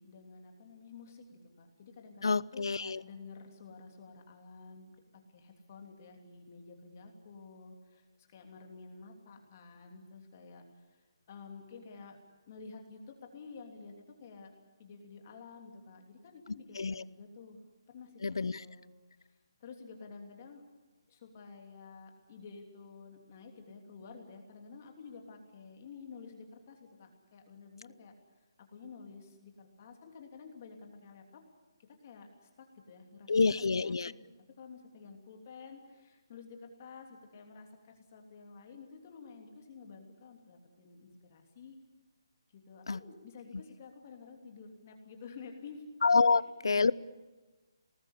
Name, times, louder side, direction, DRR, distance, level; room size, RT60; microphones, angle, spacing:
voice 1, 0.0-11.0 11.3-12.2 12.5-14.5 14.8-17.6 17.9-20.6 21.1-28.1 28.7-31.4 31.9-34.1 34.6-41.8 42.5-45.8 46.3-46.9, left 5 dB, 30° left, 3 dB, 3.0 m, -51 dB
voice 2, 2.2-3.0 16.8-17.0 18.2-18.6 33.3-34.1 42.9-43.0 46.0-46.9, left 4 dB, 75° left, 20 dB, 0.7 m, -27 dB
25.5 x 19.5 x 8.4 m, 1.3 s
hypercardioid pair, 170°, 2 cm